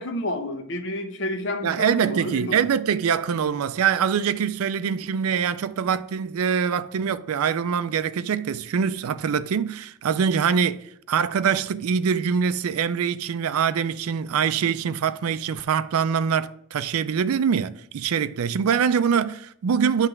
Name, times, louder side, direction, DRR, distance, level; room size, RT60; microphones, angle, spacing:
voice 1, 0.0-2.6, left 1 dB, 55° left, 0.8 m, -30 dB
voice 2, 1.6-20.1, right 7 dB, 80° right, 0.4 m, -24 dB
9.7 x 3.3 x 5.9 m
head